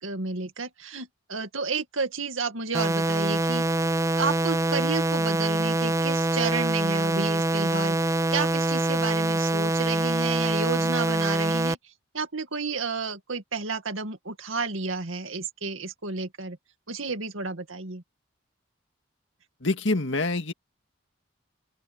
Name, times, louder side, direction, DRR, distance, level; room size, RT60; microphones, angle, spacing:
voice 1, 0.0-3.6 4.2-11.8 12.1-16.6 16.9-18.0, right 4 dB, 80° right, 2.2 m, -31 dB
sound 1, 2.7-11.7, right 2 dB, 15° right, 0.6 m, -25 dB
voice 2, 19.6-20.5, left 2 dB, 65° left, 2.0 m, -26 dB
open air
head